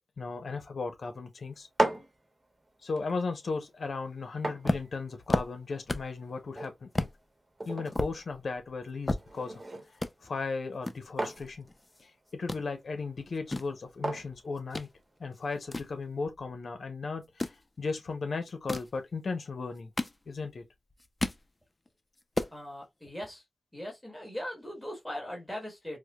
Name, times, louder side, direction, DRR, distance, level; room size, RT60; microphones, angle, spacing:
voice 1, 0.2-1.7 2.8-7.1 7.6-9.6 9.9-11.7 12.0-14.9 15.2-19.9 20.3-20.6, left 4 dB, 70° left, 0.8 m, -36 dB
sound 1, 1.5-15.4, right 2 dB, 35° right, 1.0 m, -39 dB
sound 2, 4.6-6.2 6.5-6.6 6.9-7.2 7.6-9.6 9.9-10.1 10.8-12.0 12.3-12.6 13.2-14.9 15.3-16.6 17.2-17.6 18.5-19.0 19.6-20.6 20.9-21.5 21.9-22.0 22.2-22.6, left 2 dB, 25° left, 0.5 m, -33 dB
voice 2, 22.5-23.4 23.7-26.0, left 1 dB, 5° left, 1.5 m, -39 dB
4.7 x 2.2 x 2.3 m
cardioid pair, 70°, 0 cm